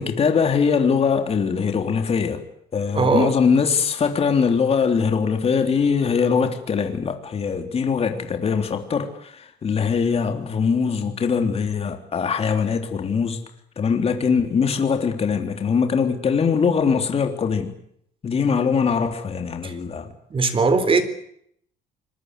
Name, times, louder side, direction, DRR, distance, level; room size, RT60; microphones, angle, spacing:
voice 1, 0.0-2.4 2.7-13.4 13.8-17.8 18.2-20.1, left 6 dB, 35° left, 3.4 m, -22 dB
voice 2, 2.9-3.3 19.6-19.7 20.3-21.0, right 4 dB, 30° right, 3.8 m, -19 dB
26.0 x 21.5 x 8.2 m
cardioid pair, 110°, 17 cm